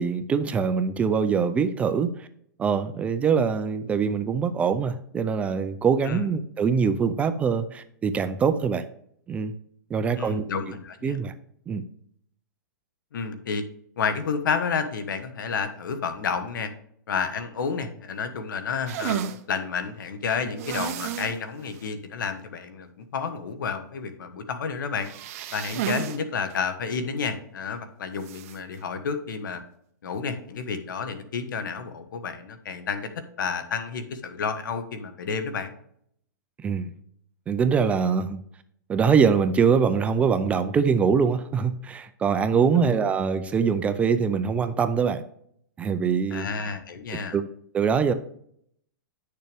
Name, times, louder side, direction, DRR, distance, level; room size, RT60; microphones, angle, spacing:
voice 1, 0.0-2.3 2.6-8.9 9.3-9.5 9.9-10.4 11.0-11.3 11.7-11.8 36.6-36.9 37.5-38.4 38.9-45.2 45.8-46.5 47.3-47.5 47.7-48.1, right 6 dB, 10° right, 10 dB, 0.4 m, -23 dB
voice 2, 10.2-11.2 13.1-13.6 14.0-16.7 17.1-25.1 25.5-29.6 30.0-33.1 33.4-35.7 42.7-42.9 46.3-47.4, left 5 dB, 80° left, 9 dB, 1.4 m, -30 dB
sound 1, 18.9-19.4 20.6-21.4 21.7-21.8 22.2-22.3 25.0-26.2 26.5-26.6 28.2-28.6, right 9 dB, 45° right, 0.7 m, -32 dB
10.0 x 6.6 x 3.4 m, 0.68 s
hypercardioid pair, 155°, 11 cm